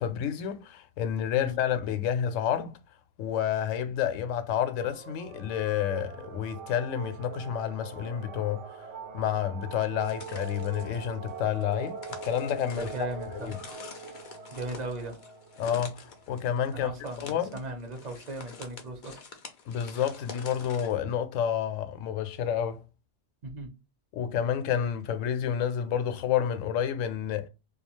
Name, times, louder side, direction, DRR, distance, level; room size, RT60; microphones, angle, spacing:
voice 1, 0.0-2.8 3.2-8.6 9.1-12.0 12.2-13.1 13.3-13.6 15.6-16.9 17.2-17.6 19.7-22.8 24.1-27.5, left 9 dB, 75° left, 0.9 m, -29 dB
sound 1, 4.8-16.6, right 5 dB, 70° right, 0.9 m, -43 dB
sound 2, 10.0-20.9, left 5 dB, 55° left, 0.5 m, -47 dB
voice 2, 12.7-13.5 14.5-15.2 16.7-19.2 23.4-23.7, right 2 dB, 40° right, 0.7 m, -37 dB
2.3 x 2.3 x 3.0 m
omnidirectional pair, 1.3 m